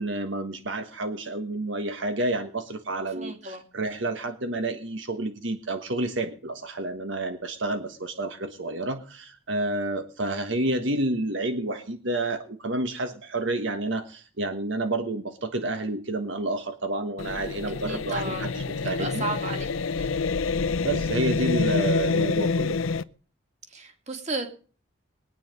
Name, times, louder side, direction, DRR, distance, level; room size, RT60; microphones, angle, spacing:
voice 1, 0.0-19.2 20.8-22.8, right 2 dB, 70° right, 7 dB, 1.5 m, -29 dB
voice 2, 3.1-3.6 17.8-18.5 18.8-19.7 20.0-20.2 23.7-24.5, right 2 dB, 35° right, 5 dB, 2.6 m, -33 dB
sound 1, 17.2-23.0, left 4 dB, 85° left, 0.7 m, -27 dB
22.0 x 9.6 x 5.3 m, 0.40 s
head